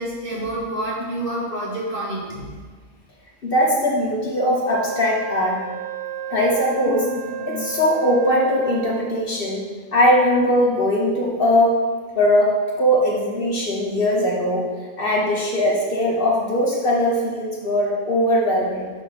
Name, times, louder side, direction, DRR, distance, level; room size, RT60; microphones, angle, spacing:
voice 1, 0.0-2.4, right 1 dB, 40° right, -6 dB, 2.0 m, -28 dB
voice 2, 3.4-5.6 6.3-9.6 9.9-11.7 12.1-14.7 15.0-18.9, left 1 dB, 45° left, -3 dB, 1.2 m, -20 dB
Wind instrument woodwind instrument, 4.7-9.4, right 6 dB, 65° right, 0.8 m, -32 dB
6.2 x 5.2 x 5.8 m, 1.5 s
omnidirectional pair, 1.3 m